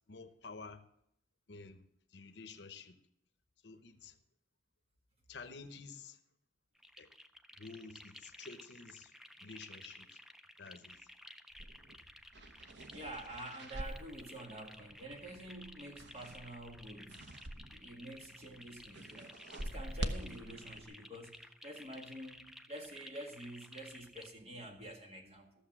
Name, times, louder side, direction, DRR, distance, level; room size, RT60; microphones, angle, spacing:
voice 1, 0.1-0.8 1.5-1.8 2.1-3.0 3.6-4.1 5.3-6.2 7.0-7.1 7.6-10.2 10.6-11.0, left 4 dB, 75° left, 9 dB, 0.8 m, -51 dB
sound 1, 6.7-24.3, equal, ahead, 0.4 m, -55 dB
sound 2, 11.5-17.9 18.2-20.8, right 1 dB, 80° right, 1.0 m, -46 dB
voice 2, 12.9-17.3 17.7-25.5, right 1 dB, 35° right, 2 dB, 1.8 m, -48 dB
14.0 x 6.9 x 6.0 m, 0.73 s
head